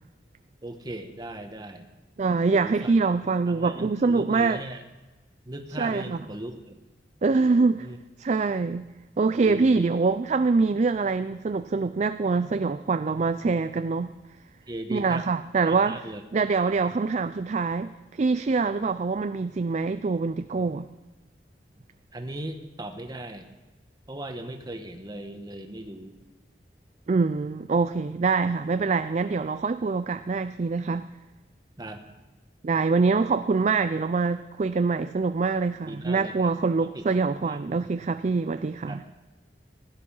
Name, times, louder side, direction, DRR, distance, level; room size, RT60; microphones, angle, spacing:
voice 1, 0.6-1.9 2.5-3.0 3.5-4.8 5.4-6.8 7.8-8.0 9.5-9.9 14.7-15.3 15.6-16.2 22.1-23.5 24.1-26.1 31.8-32.0 35.9-36.5 36.8-37.0 37.5-37.6 38.9-39.0, right 1 dB, 25° right, 6 dB, 1.1 m, -37 dB
voice 2, 2.2-4.6 5.8-6.2 7.2-7.9 8.2-8.9 9.2-14.1 14.9-16.0 16.3-20.9 27.1-31.1 32.6-39.0, right 4 dB, 40° right, 11 dB, 0.4 m, -24 dB
16.5 x 11.0 x 5.5 m, 1.2 s
head